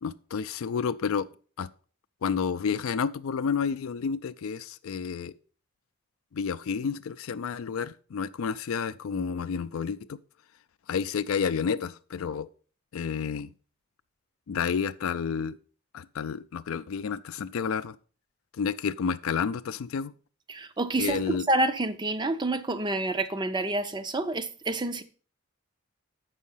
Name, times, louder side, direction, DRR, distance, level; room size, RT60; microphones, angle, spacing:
voice 1, 0.0-1.3 1.6-1.7 2.2-5.3 6.3-10.2 10.9-12.5 12.9-13.5 14.5-15.6 15.9-18.0 18.6-20.1 21.0-21.5, left 6 dB, 75° left, 0.4 m, -30 dB
voice 2, 20.5-25.0, right 2 dB, 20° right, 0.5 m, -28 dB
7.3 x 5.6 x 5.5 m
head